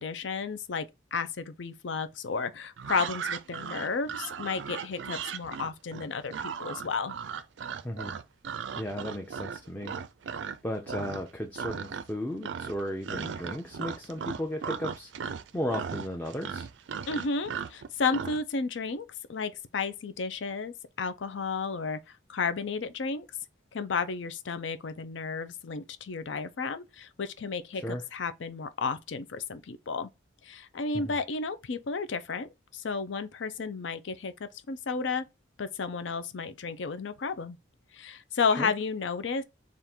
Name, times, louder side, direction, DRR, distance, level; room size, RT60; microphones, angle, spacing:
voice 1, 0.0-6.3 6.6-7.2 17.1-23.3 23.7-30.1 30.4-35.2 35.6-37.6 37.9-39.4, left 4 dB, 75° left, 0.5 m, -32 dB
sound 1, 2.8-10.6 10.9-11.3 11.6-12.2 12.4-18.4, right 7 dB, 70° right, 0.4 m, -37 dB
voice 2, 7.8-8.2 8.8-10.0 10.2-16.7 27.7-28.0 30.9-31.2 38.6-38.7, left 1 dB, 10° left, 0.5 m, -35 dB
3.6 x 2.5 x 4.2 m
head